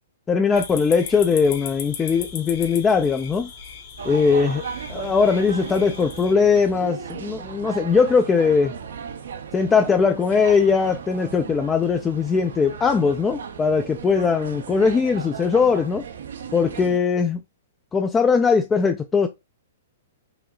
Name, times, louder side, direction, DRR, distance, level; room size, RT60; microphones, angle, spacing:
voice 1, 0.3-3.5 4.0-4.6 4.9-8.7 9.5-16.0 16.5-17.4 17.9-19.3, left 5 dB, 15° left, 0.3 m, -20 dB
sound 1, 0.5-6.3, left 6 dB, 45° left, 1.2 m, -38 dB
sound 2, 4.0-17.0, right 6 dB, 80° right, 0.6 m, -36 dB
4.9 x 2.7 x 2.4 m
hypercardioid pair, 135°, 0 cm